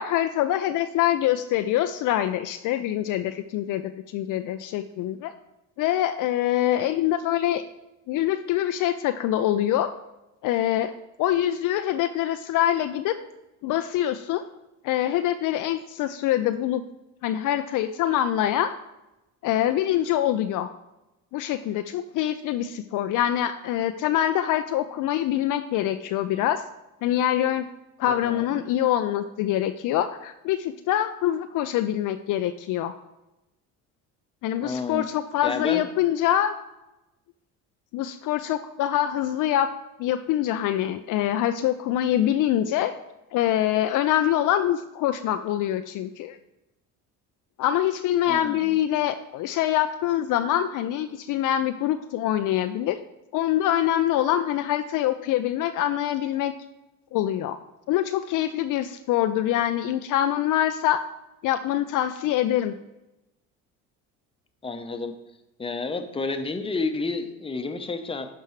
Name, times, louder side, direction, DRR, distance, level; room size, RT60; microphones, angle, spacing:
voice 1, 0.0-5.3 5.8-7.6 8.1-9.9 10.4-10.9 11.2-13.2 13.6-14.4 14.8-16.8 17.2-18.7 19.4-20.7 21.3-26.6 27.0-27.7 28.0-33.0 34.4-36.5 37.9-39.7 40.0-42.9 43.3-46.4 47.6-53.0 53.3-56.5 57.1-57.6 57.9-61.0 61.4-62.7, left 12 dB, 55° left, 9 dB, 0.5 m, -24 dB
voice 2, 34.6-35.1 35.4-35.9 48.3-48.7 64.6-65.1 65.6-68.3, left 3 dB, 15° left, 7 dB, 0.8 m, -30 dB
12.0 x 4.5 x 3.1 m, 0.97 s
supercardioid pair, 80°, 37 cm